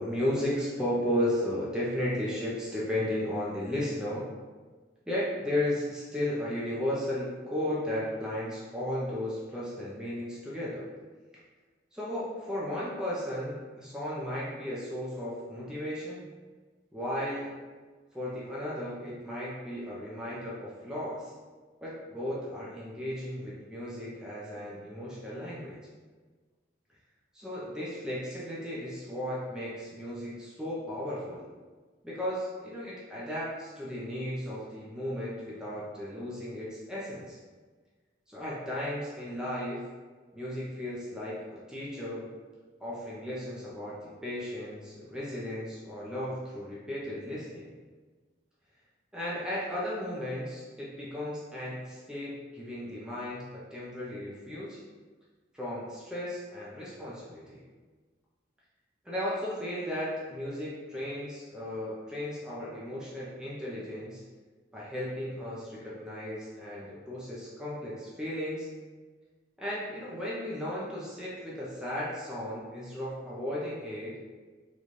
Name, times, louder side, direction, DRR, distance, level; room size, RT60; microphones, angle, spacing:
voice 1, 0.0-4.3 5.1-10.9 11.9-16.2 16.9-17.5 18.1-21.3 21.8-25.8 27.3-31.4 32.0-37.4 38.3-39.8 40.3-42.2 42.8-47.7 49.1-54.8 55.5-57.6 59.0-64.2 64.7-68.7 69.6-74.1, left 1 dB, 5° right, -8 dB, 0.5 m, -35 dB
3.9 x 2.3 x 3.1 m, 1.4 s
head